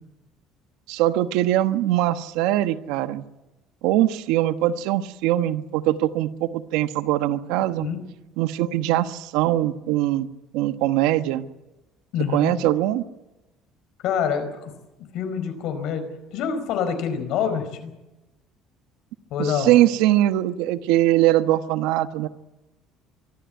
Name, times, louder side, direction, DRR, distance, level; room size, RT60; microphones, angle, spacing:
voice 1, 0.9-3.2 3.8-7.9 8.4-10.3 10.5-11.5 12.3-13.0 19.4-22.3, right 14 dB, 85° right, 11 dB, 1.2 m, -22 dB
voice 2, 12.1-12.6 14.0-14.7 15.1-16.0 16.3-17.9 19.3-19.7, left 7 dB, 60° left, 8 dB, 4.6 m, -26 dB
24.0 x 13.0 x 9.4 m, 1.0 s
cardioid pair, 165°, 0 cm